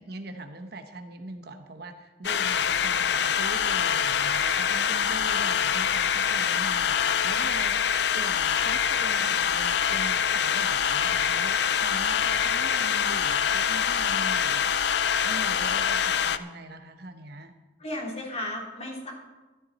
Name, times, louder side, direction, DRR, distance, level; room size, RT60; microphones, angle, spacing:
voice 1, 0.0-14.7 15.2-17.5, right 2 dB, 55° right, 6 dB, 1.0 m, -41 dB
sound 1, 2.2-16.4, left 8 dB, 60° left, 0.5 m, -25 dB
voice 2, 17.8-19.1, left 1 dB, 35° left, -2 dB, 3.3 m, -34 dB
13.5 x 13.0 x 4.2 m, 1.2 s
head